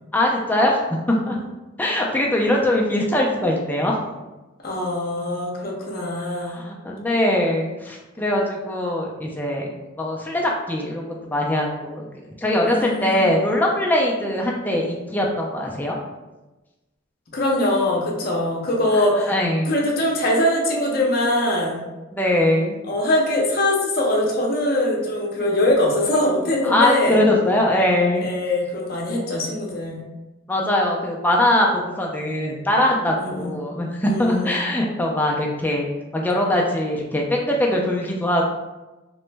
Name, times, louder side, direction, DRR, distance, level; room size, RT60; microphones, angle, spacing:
voice 1, 0.1-1.4 1.8-4.0 6.3-9.7 10.0-12.1 12.4-16.0 19.0-19.7 22.1-22.8 26.6-28.3 30.5-35.9 36.1-38.4, left 1 dB, 10° left, -1 dB, 0.3 m, -21 dB
voice 2, 4.6-6.6 12.6-13.3 17.3-19.3 19.6-21.8 22.8-27.2 28.2-30.0 33.2-33.6 34.0-34.6, left 1 dB, 50° left, -2 dB, 0.6 m, -22 dB
2.9 x 2.1 x 3.3 m, 1.1 s
head